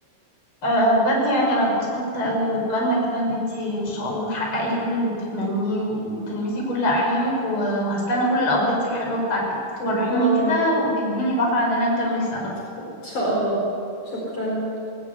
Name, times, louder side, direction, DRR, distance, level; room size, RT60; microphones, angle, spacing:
voice 1, 0.6-9.4 9.9-12.4, equal, 30° left, -3 dB, 6.0 m, -23 dB
voice 2, 9.8-10.6 13.0-13.6 14.0-14.6, right 1 dB, 50° left, -4 dB, 5.7 m, -25 dB
19.5 x 19.5 x 8.2 m, 2.5 s
omnidirectional pair, 4.7 m